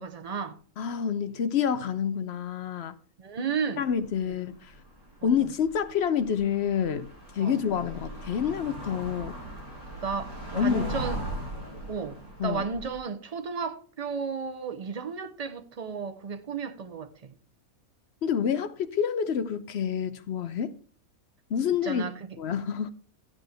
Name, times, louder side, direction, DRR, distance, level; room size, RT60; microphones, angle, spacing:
voice 1, 0.0-0.6 3.2-3.8 4.3-4.4 5.2-5.3 7.4-7.6 10.0-11.2 11.9-17.3 21.8-22.2, right 5 dB, 50° right, 0.4 m, -33 dB
voice 2, 0.8-3.0 3.8-4.7 5.2-7.1 7.3-9.4 10.6-10.8 12.4-12.6 18.2-20.7 21.5-22.0 22.4-22.9, left 8 dB, 60° left, 0.7 m, -28 dB
sound 1, 3.9-4.3 4.5-13.0, right 1 dB, 25° right, 5.4 m, -39 dB
13.0 x 8.4 x 3.4 m
omnidirectional pair, 1.5 m